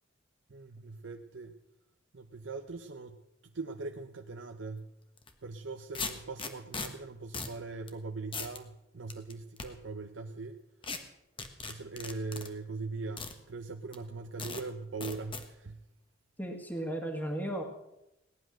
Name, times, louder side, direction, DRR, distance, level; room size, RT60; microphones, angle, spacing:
voice 1, 0.5-1.5 2.1-3.2 3.4-4.9 5.4-10.5 11.7-15.8, right 3 dB, 85° right, 5 dB, 0.8 m, -41 dB
sound 1, 5.2-5.3 5.9-6.9 7.3-7.6 7.9-8.0 8.3-8.6 9.1-9.7 10.8-11.0 11.4-12.5 13.2-13.3 13.9-14.0 14.4-14.6 15.0-15.4, left 4 dB, 30° left, 1.3 m, -38 dB
voice 2, 16.4-17.6, right 1 dB, 10° left, 3 dB, 1.9 m, -35 dB
18.0 x 10.5 x 6.3 m, 0.89 s
head